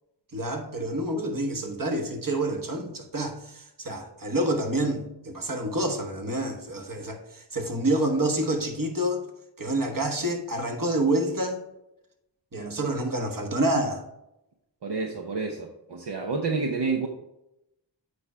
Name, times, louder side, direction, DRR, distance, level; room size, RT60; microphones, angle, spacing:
voice 1, 0.3-9.2 9.6-11.6 12.5-14.0, right 1 dB, 50° right, 4 dB, 1.4 m, -28 dB
voice 2, 14.8-17.1, right 4 dB, 65° right, 2 dB, 0.9 m, -29 dB
8.0 x 5.0 x 4.5 m, 0.87 s
wide cardioid pair, 75°, 44 cm